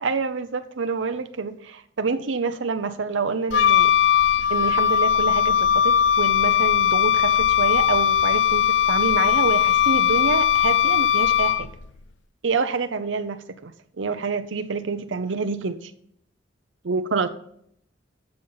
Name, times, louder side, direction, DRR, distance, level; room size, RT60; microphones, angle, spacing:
voice 1, 0.0-3.9 4.5-11.7 12.4-13.7 14.0-15.9 16.8-17.3, right 4 dB, 85° right, 0.6 m, -27 dB
Wind instrument woodwind instrument, 3.5-11.8, left 9 dB, 75° left, 0.5 m, -19 dB
13.0 x 7.1 x 4.0 m
head